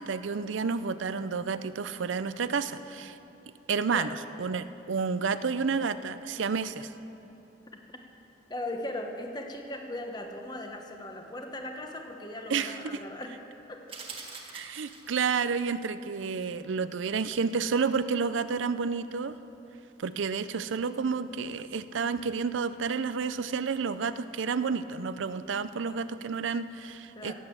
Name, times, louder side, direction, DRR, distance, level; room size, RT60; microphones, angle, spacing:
voice 1, 0.0-3.2 3.7-6.9 12.5-13.0 14.5-19.3 20.0-27.3, right 5 dB, 85° right, 13 dB, 0.5 m, -30 dB
voice 2, 8.5-13.3 13.7-13.8 27.2-27.3, left 1 dB, 20° left, 3 dB, 1.1 m, -38 dB
sound 1, 13.9-15.4, right 4 dB, 30° right, 1.5 m, -43 dB
17.0 x 8.3 x 7.3 m, 3.0 s
head